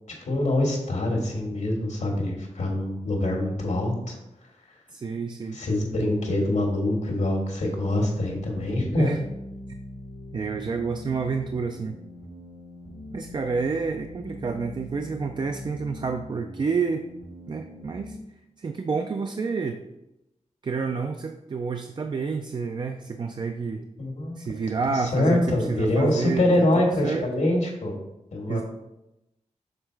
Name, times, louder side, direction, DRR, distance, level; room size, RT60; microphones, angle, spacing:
voice 1, 0.3-4.1 5.5-9.1 24.0-24.4 24.9-27.9 28.3-28.6, left 1 dB, 75° left, 0 dB, 1.5 m, -24 dB
voice 2, 4.9-5.6 9.0-9.2 10.3-12.0 13.1-17.0 17.5-18.2 18.6-19.8 20.6-23.9 24.4-27.3 28.5-28.6, right 5 dB, 40° right, 6 dB, 0.4 m, -29 dB
sound 1, 8.2-18.2, left 1 dB, 85° right, 2.1 m, -42 dB
6.6 x 4.0 x 4.5 m, 0.91 s
wide cardioid pair, 150°, 13 cm